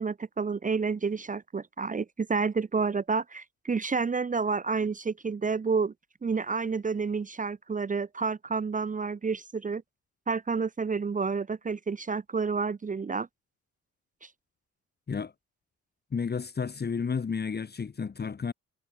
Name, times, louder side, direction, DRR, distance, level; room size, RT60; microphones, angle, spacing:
voice 1, 0.0-5.9 6.2-9.8 10.3-13.3 14.2-14.3, right 5 dB, 25° right, 1.0 m, -29 dB
voice 2, 16.1-18.5, left 5 dB, 35° left, 1.8 m, -31 dB
cardioid pair, 90°, 30 cm